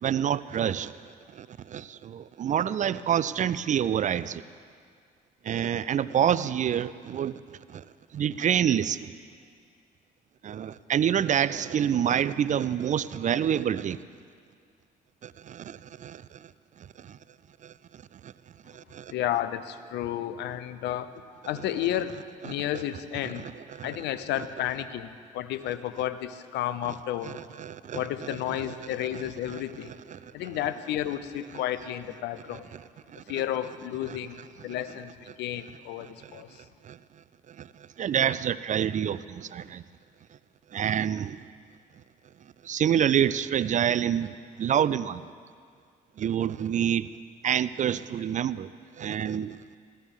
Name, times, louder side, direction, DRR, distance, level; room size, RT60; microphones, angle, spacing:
voice 1, 0.0-0.9 1.3-4.4 5.4-7.4 7.7-7.8 8.1-9.1 10.4-14.0 15.2-16.5 17.0-17.2 17.6-17.7 18.2-18.3 18.7-19.1 22.5-22.6 23.2-24.0 27.2-28.6 29.1-29.2 29.5-29.6 30.1-30.3 33.1-33.2 36.0-36.4 36.8-37.0 37.5-37.7 38.0-39.8 40.7-41.4 42.6-44.3 44.6-45.3 46.2-47.1 47.4-48.7 49.0-49.6, right 9 dB, 45° right, 17 dB, 0.4 m, -27 dB
voice 2, 19.1-23.4 23.8-27.4 27.9-29.9 30.3-32.6 33.3-36.6, left 12 dB, 75° left, 13 dB, 0.6 m, -32 dB
15.0 x 14.0 x 3.6 m, 2.2 s
hypercardioid pair, 55°, 18 cm